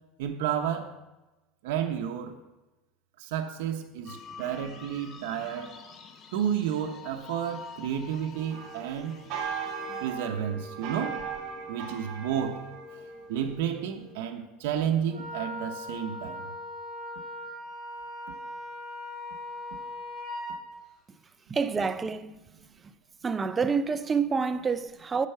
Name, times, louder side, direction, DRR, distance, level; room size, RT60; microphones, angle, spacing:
voice 1, 0.2-0.9 1.6-2.4 3.2-5.7 6.3-9.2 10.0-11.2 11.7-12.6 12.9-13.0 13.3-16.4, right 9 dB, 80° right, 0.9 m, -31 dB
sound 1, 4.0-10.1, left 6 dB, 30° left, 0.8 m, -47 dB
sound 2, 8.3-14.1, right 6 dB, 45° right, 1.8 m, -38 dB
Wind instrument woodwind instrument, 15.1-20.6, left 1 dB, 15° left, 1.8 m, -39 dB
voice 2, 21.5-22.4 23.2-25.3, right 5 dB, 15° right, 0.4 m, -28 dB
8.3 x 6.8 x 5.6 m
supercardioid pair, 155°, 0 cm